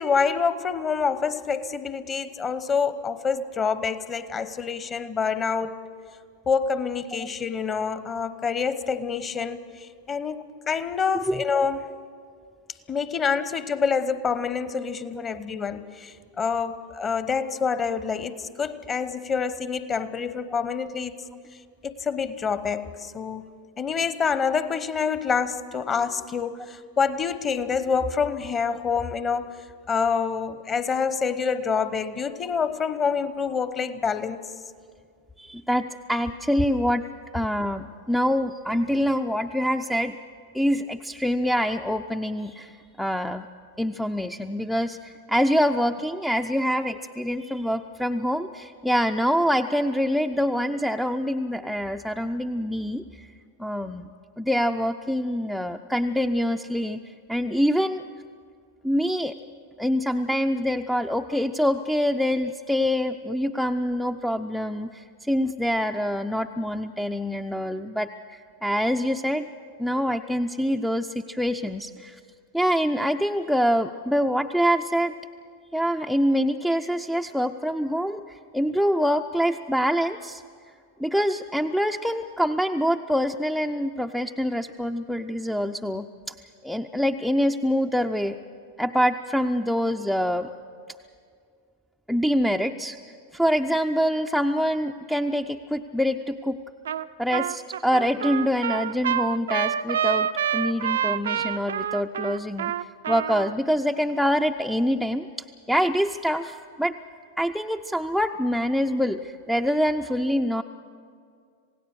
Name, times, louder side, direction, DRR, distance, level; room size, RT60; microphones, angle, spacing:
voice 1, 0.0-5.8 6.5-11.9 12.9-21.1 21.8-23.5 23.8-34.4, left 5 dB, 25° left, 13 dB, 1.0 m, -27 dB
voice 2, 35.4-37.1 37.3-40.2 40.5-43.5 43.8-53.3 53.6-54.1 54.4-57.0 57.3-58.0 58.8-59.3 59.8-69.5 69.8-72.2 72.5-75.1 75.7-80.4 81.0-86.4 86.6-88.4 88.8-90.5 92.1-93.0 93.3-96.6 97.2-105.3 105.7-107.0 107.4-110.6, equal, ahead, 7 dB, 0.5 m, -25 dB
Trumpet, 96.9-97.1 97.3-103.5, right 9 dB, 65° right, 0.5 m, -27 dB
27.0 x 17.5 x 6.5 m, 2.2 s
figure-of-eight pair, 90°, 0 cm